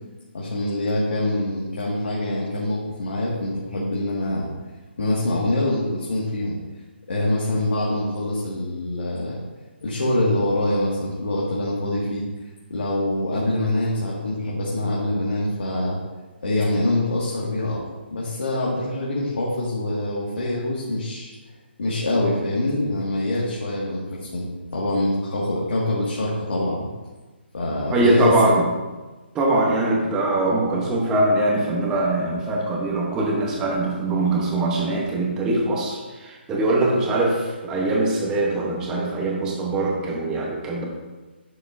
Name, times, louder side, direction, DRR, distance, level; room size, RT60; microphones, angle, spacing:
voice 1, 0.3-4.5 5.0-6.6 7.1-9.4 9.8-12.3 12.7-16.0 16.4-17.8 18.1-21.3 21.8-24.5 24.7-26.9 27.5-28.5, left 1 dB, 75° left, -6 dB, 2.0 m, -24 dB
voice 2, 27.9-28.6 29.3-40.8, right 2 dB, 10° right, -2 dB, 1.0 m, -22 dB
10.0 x 6.8 x 2.7 m, 1.2 s
hypercardioid pair, 170°, 6 cm